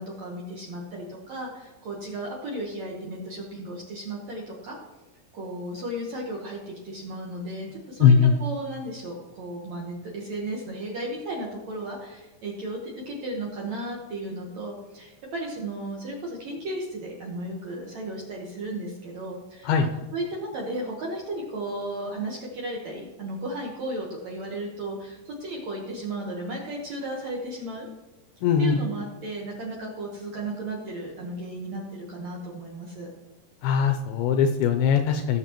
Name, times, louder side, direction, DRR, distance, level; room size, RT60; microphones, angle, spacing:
voice 1, 0.0-4.8 5.3-19.7 20.1-27.9 28.6-33.1, right 1 dB, 65° right, -2 dB, 1.9 m, -34 dB
voice 2, 8.0-8.3 19.6-19.9 28.4-28.8 33.6-35.4, left 7 dB, 80° left, 5 dB, 2.3 m, -20 dB
18.0 x 6.9 x 3.0 m, 1.2 s
omnidirectional pair, 4.8 m